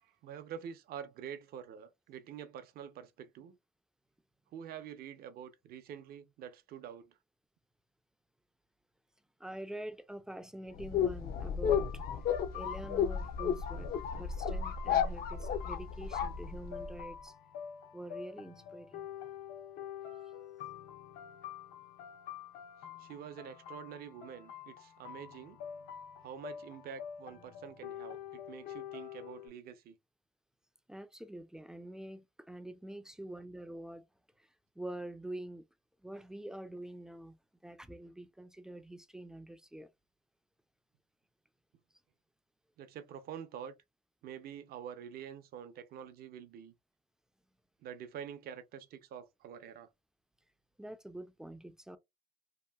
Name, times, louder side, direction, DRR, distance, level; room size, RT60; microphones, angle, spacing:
voice 1, 0.0-3.6 4.5-7.2 23.0-25.6 26.2-30.0 42.8-43.7 44.2-46.7 47.8-49.9, right 8 dB, 65° right, 0.5 m, -47 dB
voice 2, 9.4-17.4 17.9-19.1 30.9-34.1 34.4-35.6 36.0-37.4 37.6-39.9 50.8-52.0, right 1 dB, 5° right, 0.3 m, -46 dB
sound 1, 10.8-17.0, left 7 dB, 60° left, 0.5 m, -33 dB
sound 2, 11.7-29.5, left 9 dB, 85° left, 0.8 m, -47 dB
2.8 x 2.6 x 2.2 m
cardioid pair, 110°, 17 cm